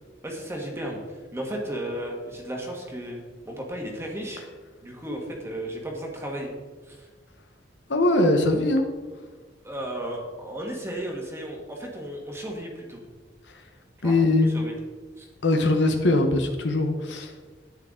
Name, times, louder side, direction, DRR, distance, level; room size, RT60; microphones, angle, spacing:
voice 1, 0.2-3.2 3.4-4.4 4.8-6.5 6.9-7.1 9.6-13.0 14.0-14.3 14.5-14.7 15.2-15.3, right 1 dB, 15° right, 0 dB, 1.5 m, -34 dB
voice 2, 7.9-8.9 14.0-14.5 15.4-17.3, left 2 dB, 75° left, 5 dB, 0.9 m, -21 dB
10.5 x 8.8 x 3.8 m, 1.4 s
head